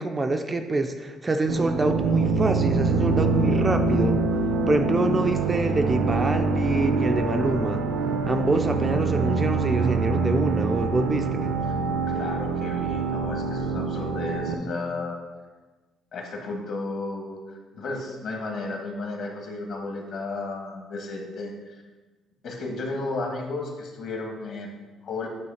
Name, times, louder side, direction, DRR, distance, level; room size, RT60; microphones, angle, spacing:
voice 1, 0.0-4.2 4.7-7.8 8.3-11.5, right 2 dB, 15° right, 6 dB, 0.3 m, -26 dB
sound 1, 1.5-14.5, right 4 dB, 80° right, 0.5 m, -25 dB
voice 2, 12.1-15.2 16.1-17.4 17.7-21.8 22.4-25.3, left 3 dB, 50° left, 1 dB, 1.4 m, -33 dB
9.2 x 3.1 x 5.6 m, 1.3 s
cardioid pair, 165°, 0 cm